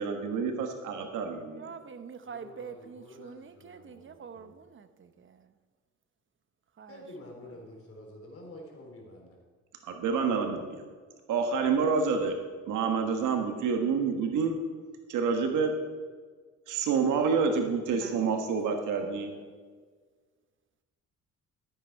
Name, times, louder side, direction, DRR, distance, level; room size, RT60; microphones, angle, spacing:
voice 1, 0.0-1.7 9.8-10.8 11.3-12.4 12.7-14.6 15.1-15.8 16.7-19.4, right 5 dB, 85° right, 1.5 m, -28 dB
voice 2, 1.6-5.5 6.8-7.0 17.9-18.4 19.0-19.3, right 6 dB, 40° right, 0.9 m, -46 dB
voice 3, 2.2-4.6 6.9-9.4, left 1 dB, 50° left, 3.5 m, -49 dB
13.0 x 8.6 x 4.6 m
cardioid pair, 90°, 30 cm